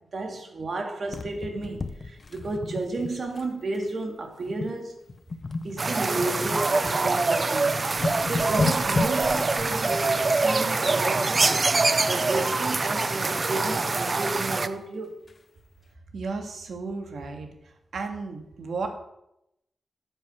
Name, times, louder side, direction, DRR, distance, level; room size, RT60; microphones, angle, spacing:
voice 1, 0.1-5.0 5.6-7.8 8.3-15.1, right 2 dB, 55° right, 3 dB, 2.6 m, -32 dB
sound 1, 1.1-3.5 3.7-4.0 4.5-4.8 5.1-7.0 7.5-7.6 7.8-9.7 11.5-12.1 12.4-13.9 14.4-14.5 14.7-14.8 15.3-15.4, left 3 dB, 40° left, 0.8 m, -33 dB
sound 2, 5.8-14.7, right 3 dB, 35° right, 0.7 m, -24 dB
voice 2, 16.1-17.5 17.9-18.9, right 4 dB, 75° right, 4 dB, 2.1 m, -33 dB
12.5 x 7.8 x 6.5 m, 0.83 s
wide cardioid pair, 115°, 0 cm